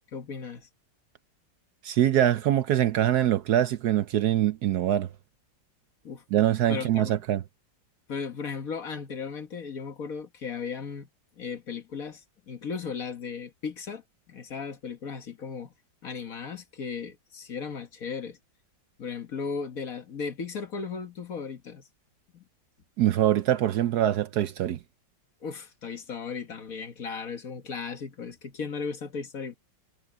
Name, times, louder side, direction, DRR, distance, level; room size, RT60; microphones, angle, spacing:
voice 1, 0.1-0.7 6.0-6.2 6.7-7.1 8.1-11.1 11.4-14.0 14.3-15.7 16.0-18.4 19.0-21.9 22.3-22.4 25.4-29.6, left 5 dB, 50° left, 1.7 m, -36 dB
voice 2, 1.8-5.1 6.3-7.4 23.0-24.8, right 12 dB, 65° right, 1.1 m, -23 dB
omnidirectional pair, 2.0 m